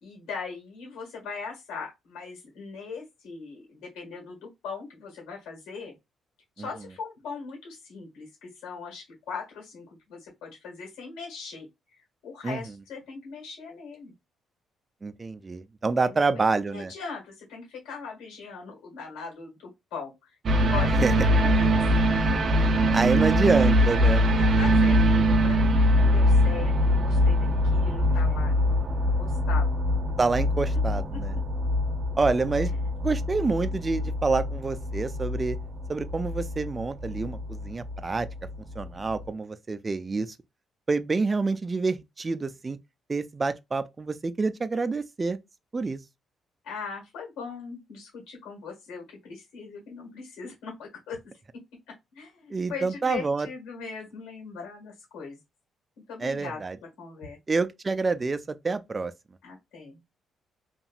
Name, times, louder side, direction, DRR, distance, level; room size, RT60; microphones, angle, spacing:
voice 1, 0.0-5.9 6.6-11.7 12.2-14.1 16.0-16.4 16.7-20.1 20.7-21.5 21.8-21.9 24.2-28.5 29.0-29.9 46.6-51.2 52.1-55.4 56.1-56.6 57.0-57.4 59.4-60.0, left 5 dB, 85° left, 1.7 m, -40 dB
voice 2, 15.0-16.9 21.0-21.1 22.9-24.2 30.2-31.3 32.2-32.7 33.0-35.6 35.9-38.3 38.8-40.4 40.9-42.8 43.1-45.4 45.7-46.0 52.5-53.5 56.2-56.8 57.5-59.1, right 4 dB, 30° right, 0.4 m, -27 dB
sound 1, 20.5-38.9 39.2-39.3, equal, 55° right, 0.7 m, -23 dB
2.9 x 2.7 x 2.4 m
cardioid pair, 90°, 0 cm